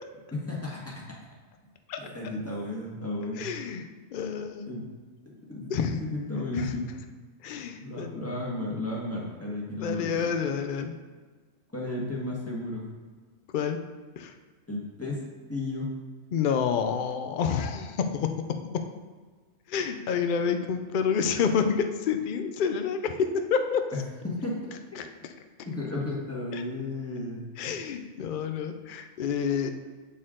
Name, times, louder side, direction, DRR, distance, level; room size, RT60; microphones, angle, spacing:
voice 1, 0.3-1.0 2.0-3.5 4.7-4.9 5.5-6.9 7.8-10.2 11.7-12.8 14.7-15.2 15.5-15.9 24.2-24.7 25.6-27.5, left 2 dB, 10° left, -4 dB, 1.4 m, -33 dB
voice 2, 3.4-4.7 5.7-6.0 6.6-6.7 7.4-8.1 9.8-10.9 13.5-13.8 14.2-14.3 16.3-18.3 18.7-18.8 19.7-23.8 25.0-25.1 26.5-26.6 27.6-29.7, left 6 dB, 75° left, 7 dB, 0.4 m, -28 dB
8.3 x 4.3 x 3.7 m, 1.4 s
omnidirectional pair, 1.5 m